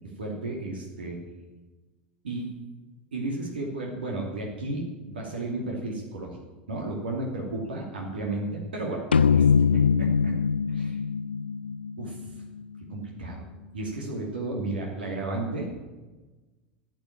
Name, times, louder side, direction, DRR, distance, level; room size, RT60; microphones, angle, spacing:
voice 1, 0.2-1.2 2.2-2.5 3.1-6.4 6.7-9.5 9.7-10.4 10.7-11.0 12.0-12.3 12.9-13.5 13.7-15.7, right 2 dB, 70° right, -1 dB, 2.7 m, -33 dB
sound 1, 9.1-12.6, left 6 dB, 80° left, 0.3 m, -23 dB
14.0 x 8.5 x 8.8 m, 1.2 s
figure-of-eight pair, 80°, 6 cm